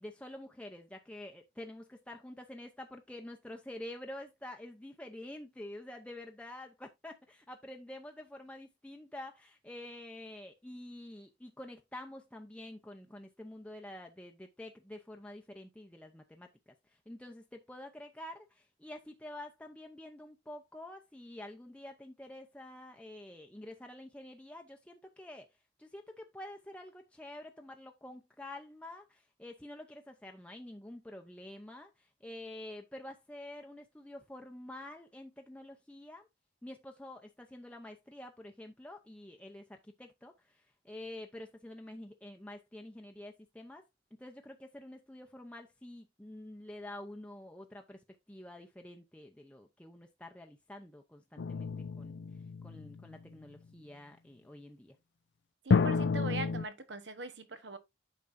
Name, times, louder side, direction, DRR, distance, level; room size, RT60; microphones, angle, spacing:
voice 1, 0.0-16.7 17.1-25.5 25.8-36.3 36.6-43.8 44.2-51.7 52.0-52.2 52.6-55.0, left 1 dB, 5° left, 0.7 m, -48 dB
sound 1, 51.4-53.2 55.7-56.6, left 5 dB, 70° left, 0.4 m, -30 dB
voice 2, 55.6-57.8, right 3 dB, 70° right, 1.1 m, -41 dB
8.4 x 5.8 x 2.6 m
head